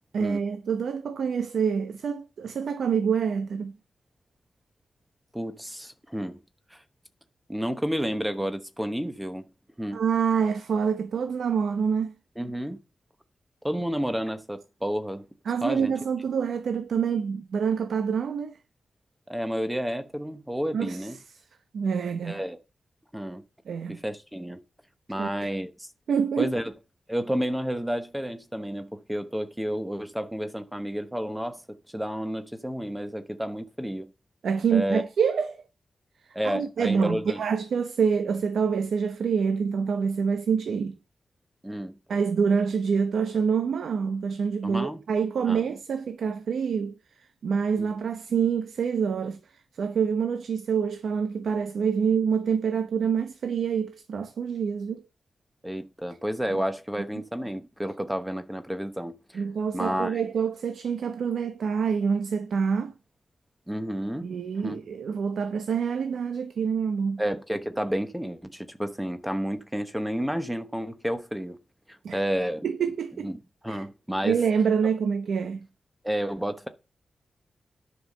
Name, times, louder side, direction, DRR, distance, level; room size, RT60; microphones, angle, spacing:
voice 1, 0.1-3.7 9.9-12.1 15.5-18.6 20.7-21.1 21.7-22.4 23.7-24.0 25.2-25.5 26.1-26.5 34.4-35.6 36.4-41.0 42.1-46.9 47.4-55.0 56.5-56.6 59.3-62.9 64.2-67.2 72.0-72.2 72.6-73.3 73.7-73.8 74.2-75.7, right 6 dB, 80° right, 0.9 m, -26 dB
voice 2, 5.3-6.4 6.7-6.8 7.5-9.5 9.8-10.0 12.4-12.8 13.6-15.2 15.6-15.9 19.3-21.2 22.2-22.6 23.1-23.4 23.9-24.6 25.1-25.9 26.4-26.7 27.1-31.6 31.9-34.1 34.7-35.0 36.3-37.4 41.6-42.0 44.6-45.0 45.5-45.6 47.8-47.9 55.6-59.4 59.7-60.2 63.7-64.3 64.6-64.8 67.2-71.6 72.1-72.7 73.2-73.3 73.6-74.4 74.8-74.9 76.0-76.7, equal, 5° right, 0.9 m, -30 dB
10.0 x 5.6 x 6.5 m
wide cardioid pair, 180°, 0 cm